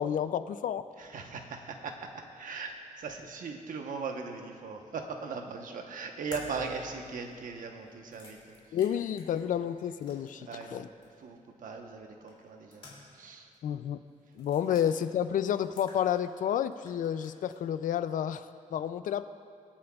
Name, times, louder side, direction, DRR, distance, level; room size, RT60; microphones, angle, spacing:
voice 1, 0.0-0.8 8.7-10.9 13.6-14.0 14.3-18.5 18.7-19.3, left 9 dB, 80° left, 12 dB, 0.4 m, -30 dB
voice 2, 1.0-8.6 10.4-10.8 11.2-12.9 13.1-13.5, right 5 dB, 90° right, 4 dB, 1.0 m, -39 dB
sound 1, 6.3-10.7 11.0-11.1 12.3-13.3 13.5-13.6 14.3-14.9 15.4-16.4 16.7-17.6, left 3 dB, 40° left, 2.7 m, -51 dB
24.5 x 8.6 x 2.4 m, 2.6 s
wide cardioid pair, 160°, 14 cm